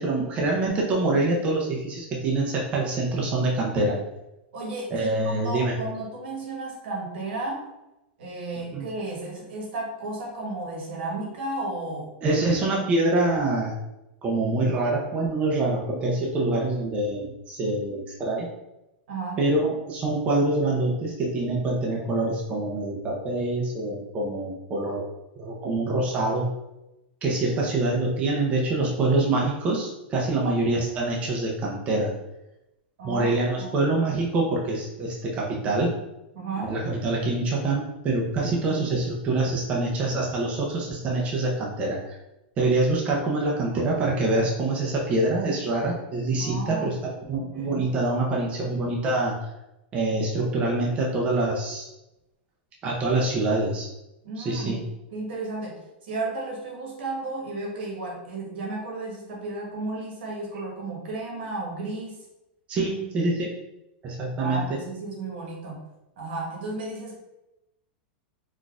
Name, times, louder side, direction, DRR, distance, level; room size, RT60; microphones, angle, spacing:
voice 1, 0.0-4.0 4.9-5.8 8.7-8.9 12.2-13.7 14.2-18.5 19.4-25.0 25.4-26.5 27.2-32.1 33.0-35.9 36.6-42.2 42.6-49.4 49.9-51.9 52.8-53.9 54.4-54.8 62.7-63.5 64.0-64.8, right 2 dB, 20° right, -2 dB, 0.5 m, -25 dB
voice 2, 4.5-7.7 8.2-12.4 19.1-19.4 33.0-33.3 33.6-33.9 36.3-36.8 46.4-47.0 47.3-47.8 54.2-62.2 64.3-65.8 66.2-67.2, right 2 dB, 70° right, -1 dB, 1.2 m, -33 dB
3.9 x 2.4 x 2.3 m, 0.92 s
supercardioid pair, 155°, 6 cm